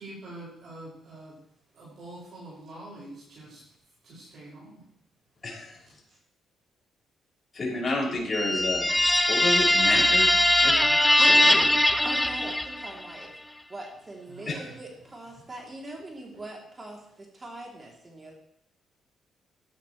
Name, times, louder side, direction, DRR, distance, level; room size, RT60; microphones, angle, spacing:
voice 1, 0.0-1.4 1.7-3.7 4.0-4.8 6.1-6.2 14.3-14.8 16.3-16.4, right 1 dB, 60° right, 5.8 m, -45 dB
voice 2, 5.4-5.8 7.5-8.9 9.3-10.3 10.6-11.7 14.5-14.7, left 2 dB, 30° left, 6.3 m, -30 dB
sound 1, 8.3-13.0, left 1 dB, 10° left, 0.6 m, -21 dB
voice 3, 12.0-13.3 13.7-18.3, right 2 dB, 25° right, 3.0 m, -41 dB
16.0 x 12.0 x 3.2 m
cardioid pair, 90°, 0 cm